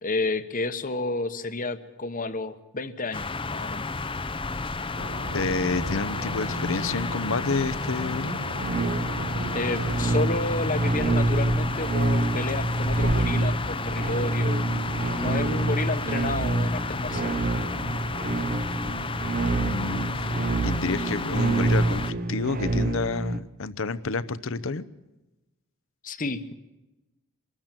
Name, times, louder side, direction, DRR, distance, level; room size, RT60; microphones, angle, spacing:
voice 1, 0.0-3.9 9.5-14.7 15.2-17.4 26.0-26.5, left 3 dB, 40° left, 12 dB, 1.1 m, -30 dB
sound 1, 3.1-22.1, left 3 dB, 25° left, 0.6 m, -32 dB
sound 2, 4.9-10.2, right 2 dB, 80° right, 1.4 m, -36 dB
voice 2, 5.3-8.4 19.6-20.3 20.6-24.9, left 4 dB, 65° left, 14 dB, 0.8 m, -29 dB
sound 3, 8.6-23.4, right 2 dB, 45° right, 0.8 m, -27 dB
24.5 x 13.5 x 8.9 m, 1.0 s
head